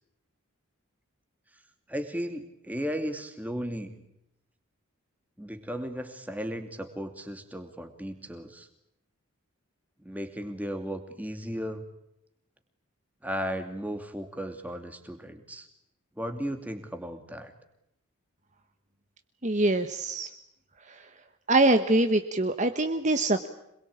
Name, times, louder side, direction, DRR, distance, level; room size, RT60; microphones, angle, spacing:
voice 1, 1.9-4.0 5.4-8.7 10.0-11.8 13.2-15.7 16.2-17.5, equal, 5° right, 6 dB, 2.6 m, -35 dB
voice 2, 19.4-20.3 21.5-23.5, right 2 dB, 35° right, 7 dB, 1.3 m, -24 dB
27.0 x 22.0 x 8.7 m, 0.79 s
head